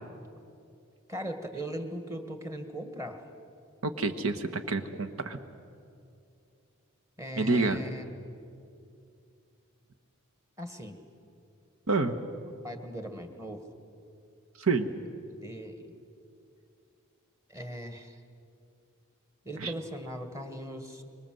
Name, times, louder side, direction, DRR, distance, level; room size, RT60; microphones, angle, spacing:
voice 1, 1.1-3.2 7.2-8.0 10.6-11.0 12.6-13.6 15.3-15.9 17.5-18.2 19.5-21.0, equal, 15° right, 6 dB, 1.9 m, -39 dB
voice 2, 3.8-5.4 7.4-7.8 11.9-12.1 14.6-14.9 19.6-19.7, right 3 dB, 80° right, 7 dB, 1.3 m, -28 dB
25.5 x 23.0 x 7.8 m, 2.5 s
head